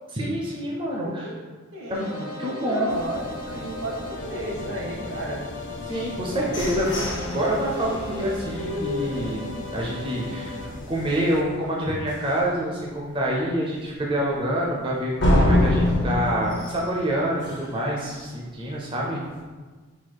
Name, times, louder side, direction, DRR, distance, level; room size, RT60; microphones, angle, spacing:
voice 1, 0.2-1.4 1.9-2.0 2.4-3.0 5.9-9.4 9.7-10.6 10.9-19.2, right 1 dB, 25° right, -3 dB, 0.5 m, -27 dB
voice 2, 1.0-1.4 1.7-5.4 6.3-6.8 18.9-19.3, right 1 dB, 75° right, -2 dB, 1.0 m, -34 dB
sound 1, 1.9-10.7, left 2 dB, 85° left, 0.7 m, -37 dB
sound 2, 2.9-11.4, left 1 dB, 40° left, 0.4 m, -40 dB
sound 3, 5.9-9.8 10.3-10.4 10.7-11.1 11.5-11.6 12.1-12.2 15.2-17.9, left 1 dB, 55° left, 0.8 m, -25 dB
4.0 x 2.3 x 4.5 m, 1.4 s
head